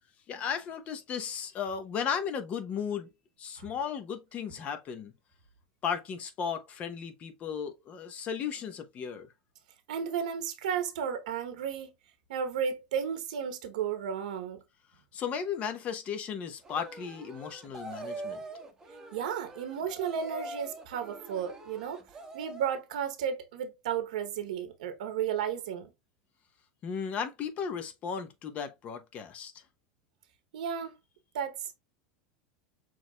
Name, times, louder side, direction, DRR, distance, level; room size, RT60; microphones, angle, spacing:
voice 1, 0.3-3.1 3.4-5.1 5.8-9.3 15.1-18.4 26.8-29.6, left 7 dB, 35° left, 0.9 m, -35 dB
voice 2, 9.9-11.9 12.3-14.6 19.1-22.0 22.3-25.9 30.5-30.9 31.3-31.7, right 8 dB, 85° right, 0.8 m, -33 dB
sound 1, 16.6-22.8, right 2 dB, 15° right, 1.0 m, -43 dB
6.2 x 3.2 x 2.2 m
supercardioid pair, 135°, 4 cm